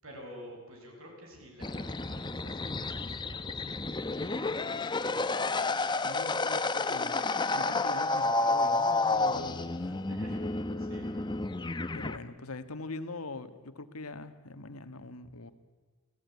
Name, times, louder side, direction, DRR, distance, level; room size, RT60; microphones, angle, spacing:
voice 1, 0.0-4.6 10.0-10.4 10.8-11.5, equal, 65° right, 2 dB, 7.7 m, -50 dB
sound 1, 1.6-12.2, left 3 dB, 20° left, 0.9 m, -30 dB
voice 2, 6.0-10.2 11.9-15.5, left 3 dB, 80° left, 10 dB, 1.7 m, -43 dB
29.0 x 17.0 x 9.6 m, 1.4 s
head